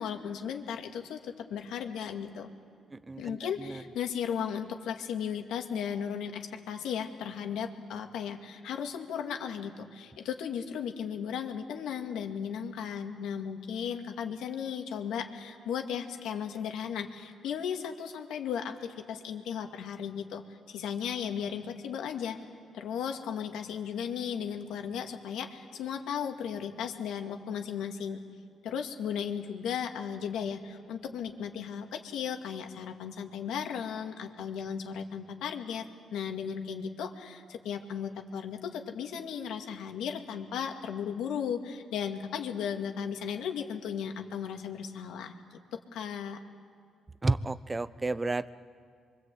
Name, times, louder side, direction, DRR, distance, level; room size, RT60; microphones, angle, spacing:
voice 1, 0.0-2.5 3.2-22.4 22.7-28.2 28.6-46.4, left 7 dB, 85° left, 4 dB, 2.1 m, -36 dB
voice 2, 2.9-3.8 47.2-48.5, right 3 dB, 20° right, 15 dB, 0.8 m, -32 dB
26.0 x 24.0 x 8.5 m, 2.1 s
cardioid pair, 90°, 0 cm